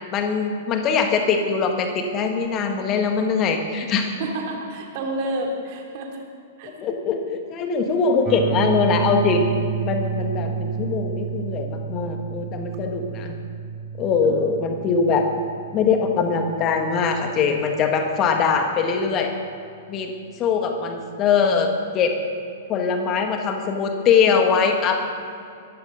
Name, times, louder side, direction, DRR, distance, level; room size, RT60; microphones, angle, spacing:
voice 1, 0.1-4.1 6.8-9.5 9.8-13.4 14.0-15.2 15.7-19.3 19.9-20.1 20.4-22.1 22.7-25.0, left 5 dB, 30° left, 4 dB, 1.7 m, -22 dB
voice 2, 4.2-6.2 6.6-6.7, right 1 dB, 45° right, 1 dB, 3.0 m, -29 dB
sound 1, 8.3-18.2, right 7 dB, 25° right, 1.0 m, -31 dB
22.5 x 14.5 x 4.0 m, 2.4 s
figure-of-eight pair, 105°, 0 cm